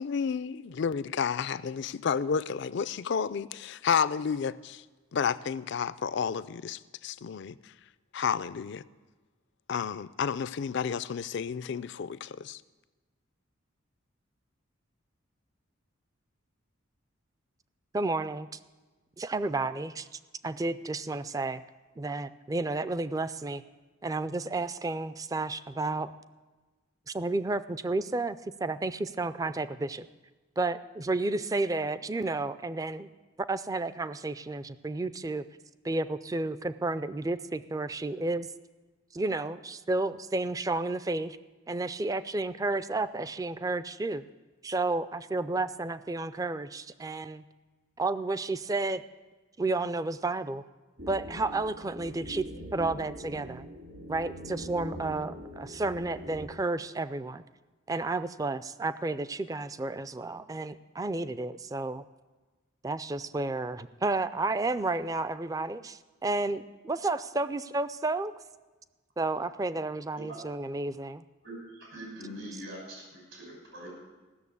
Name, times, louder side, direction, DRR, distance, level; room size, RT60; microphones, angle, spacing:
voice 1, 0.0-4.8 5.1-7.6 8.1-8.8 9.7-12.6, left 6 dB, 60° left, 17 dB, 0.4 m, -31 dB
voice 2, 17.9-18.5 19.2-20.1 20.4-21.6 22.0-23.6 24.0-26.1 27.1-30.1 30.6-33.1 33.5-35.4 35.8-38.5 39.1-41.4 41.7-44.2 44.6-47.4 48.0-49.0 49.6-50.6 51.1-52.5 52.7-53.7 54.1-57.4 57.9-62.0 62.8-68.3 69.2-71.2, right 2 dB, 15° right, 13 dB, 0.3 m, -31 dB
sound 1, 51.0-56.5, equal, 65° right, 2.2 m, -42 dB
voice 3, 71.4-73.9, right 1 dB, 80° right, -3 dB, 6.0 m, -43 dB
16.0 x 6.8 x 8.3 m, 1.2 s
head